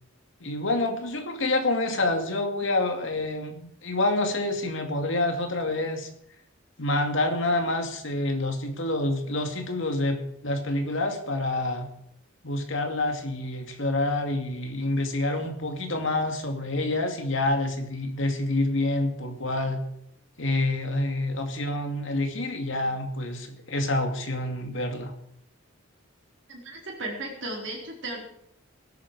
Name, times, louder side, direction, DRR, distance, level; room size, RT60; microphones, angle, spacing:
voice 1, 0.4-6.1 6.8-11.9 12.4-19.8 20.4-25.1, left 2 dB, 60° left, 5 dB, 2.5 m, -27 dB
voice 2, 26.5-28.3, right 2 dB, 55° right, 0 dB, 4.4 m, -35 dB
19.0 x 11.5 x 4.9 m, 0.73 s
head